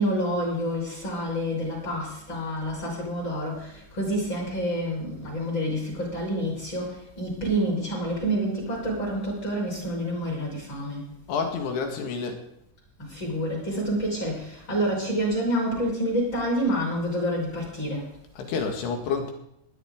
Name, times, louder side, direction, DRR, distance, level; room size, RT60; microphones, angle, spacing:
voice 1, 0.0-11.1 13.0-18.1, equal, 25° left, -3 dB, 5.7 m, -28 dB
voice 2, 11.3-12.4 18.3-19.3, left 5 dB, 60° left, 3 dB, 3.5 m, -29 dB
18.5 x 12.0 x 3.8 m, 0.73 s
omnidirectional pair, 5.8 m